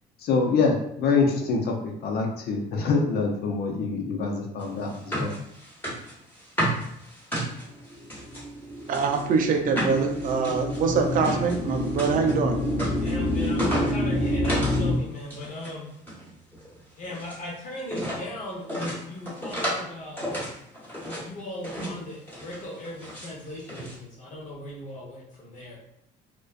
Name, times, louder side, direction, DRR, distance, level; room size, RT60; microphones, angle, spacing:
voice 1, 0.2-5.3, left 4 dB, 70° left, 1 dB, 0.6 m, -25 dB
sound 1, 4.6-8.4 8.9-14.9 15.1-15.7 16.0-17.4 17.9-18.2 18.7-19.9 20.2-21.3 21.6-22.0 22.3-23.3 23.7-24.0, equal, 10° left, 1.2 m, -33 dB
sound 2, 7.7-14.9, left 1 dB, 15° right, 0.6 m, -28 dB
voice 2, 8.9-12.6, right 5 dB, 55° right, 4 dB, 0.4 m, -24 dB
voice 3, 13.0-15.9 17.0-20.2 21.2-25.8, left 1 dB, 50° left, -3 dB, 0.9 m, -38 dB
2.4 x 2.2 x 2.4 m, 0.77 s
cardioid pair, 110°, 17 cm